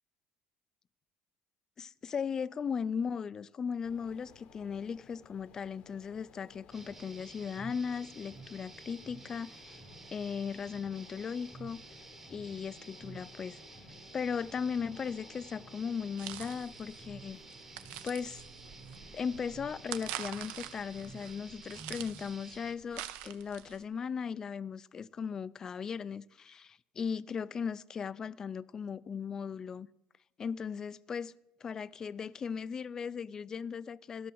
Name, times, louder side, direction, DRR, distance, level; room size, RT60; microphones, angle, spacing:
voice 1, 1.8-9.8 10.1-11.8 12.3-13.6 14.1-17.4 18.0-18.4 19.1-29.9 30.4-31.3 31.6-34.3, left 6 dB, 25° left, 0.3 m, -37 dB
sound 1, 3.8-21.5, left 7 dB, 50° left, 0.8 m, -59 dB
sound 2, 6.7-22.8, right 3 dB, 15° right, 0.9 m, -51 dB
sound 3, 16.2-23.8, right 13 dB, 75° right, 0.6 m, -45 dB
13.5 x 6.1 x 6.3 m
cardioid pair, 140°, 2 cm